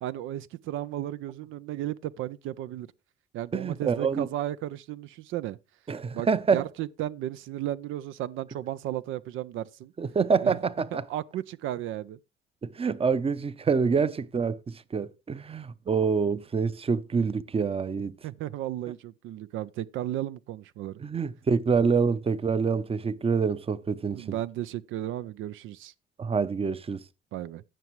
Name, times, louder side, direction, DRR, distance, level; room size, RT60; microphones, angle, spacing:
voice 1, 0.0-2.9 3.3-5.6 6.1-9.9 10.4-10.6 10.9-12.2 18.2-21.0 24.1-25.9 27.3-27.6, right 13 dB, 85° right, 0.4 m, -34 dB
voice 2, 3.5-4.3 5.9-6.6 10.0-11.0 12.6-18.2 21.0-24.2 26.2-27.0, right 5 dB, 30° right, 0.7 m, -26 dB
16.5 x 5.9 x 3.1 m
cardioid pair, 90°, 20 cm